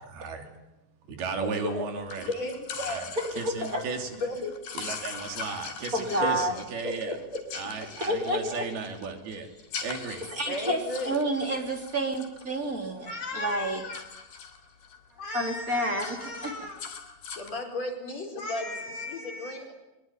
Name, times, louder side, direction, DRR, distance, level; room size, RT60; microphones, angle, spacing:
voice 1, 0.1-0.4 1.1-2.2 2.8-3.1 3.4-4.1 4.7-7.2 7.5-9.5 9.8-10.2, right 4 dB, 90° right, 5.0 m, -35 dB
voice 2, 1.4-1.9 2.3-3.0 4.1-4.5 6.2-6.4 6.8-7.4 10.5-11.2 13.1-14.0 15.2-16.8 17.4-19.7, left 2 dB, 45° left, 5.9 m, -34 dB
sound 1, 2.1-13.1 13.4-15.0 15.3-15.5 15.8-17.6, left 6 dB, 85° left, 5.1 m, -42 dB
voice 3, 3.4-3.8 5.9-6.5 8.1-8.6 10.3-13.8 15.3-16.2 16.4-16.5, right 1 dB, 25° right, 3.5 m, -29 dB
23.5 x 22.0 x 9.1 m
omnidirectional pair, 4.3 m